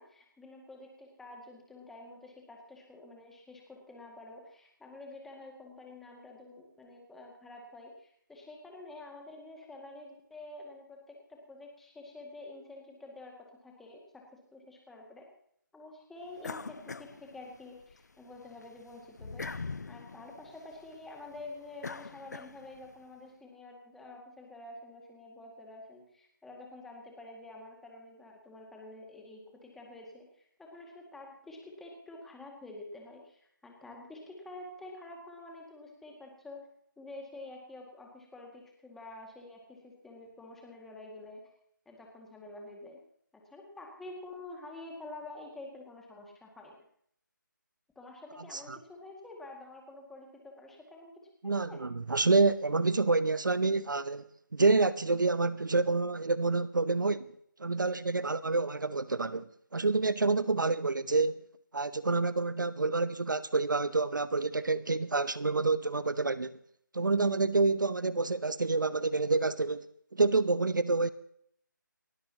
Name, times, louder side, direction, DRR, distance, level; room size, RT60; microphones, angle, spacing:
voice 1, 0.0-14.2 14.5-15.3 15.7-36.7 37.0-41.4 41.9-43.0 43.3-46.8 48.0-51.1 51.4-51.8, left 2 dB, 5° left, 2.1 m, -48 dB
sound 1, 16.4-18.0 18.4-22.9, left 4 dB, 55° left, 0.8 m, -43 dB
voice 2, 51.4-54.3 54.5-57.3 57.6-59.4 59.7-61.3 61.7-66.6 66.9-69.9 70.1-71.1, right 3 dB, 65° right, 0.9 m, -28 dB
30.0 x 13.0 x 2.9 m
figure-of-eight pair, 160°, 11 cm